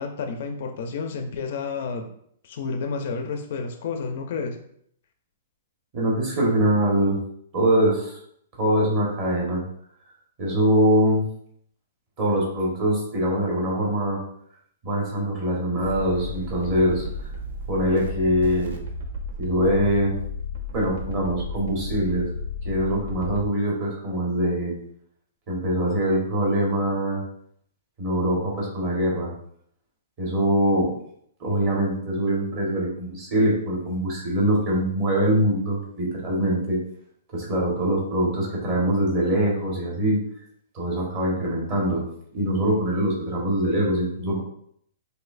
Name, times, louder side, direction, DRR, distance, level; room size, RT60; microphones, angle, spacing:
voice 1, 0.0-2.1 2.5-4.6, left 4 dB, 45° left, 5 dB, 0.4 m, -30 dB
voice 2, 5.9-7.2 7.5-8.2 8.6-9.6 10.4-11.3 12.2-14.2 14.8-17.0 17.7-18.7 19.4-20.1 20.7-22.3 22.6-24.7 25.5-27.2 28.0-29.3 30.2-30.9 31.4-36.8 37.3-40.2 40.7-42.0 42.3-44.4, right 1 dB, 25° right, -3 dB, 1.2 m, -23 dB
sound 1, 15.8-23.4, left 2 dB, 60° right, 0.6 m, -33 dB
6.0 x 2.7 x 2.5 m, 0.67 s
hypercardioid pair, 175°, 0 cm